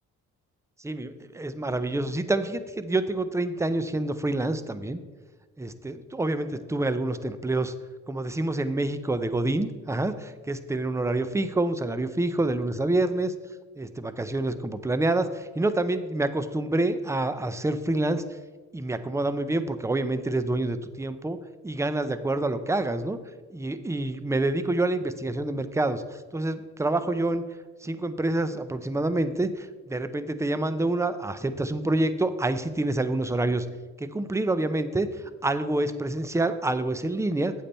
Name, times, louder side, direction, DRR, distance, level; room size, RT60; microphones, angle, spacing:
voice 1, 0.8-5.0 5.6-7.7 8.1-13.3 13.8-18.2 18.7-21.4 21.6-23.2 23.5-27.4 27.8-33.7 34.0-35.1 35.4-37.5, right 2 dB, 10° right, 12 dB, 0.7 m, -27 dB
8.8 x 8.5 x 4.4 m, 1.3 s
cardioid pair, 90°, 30 cm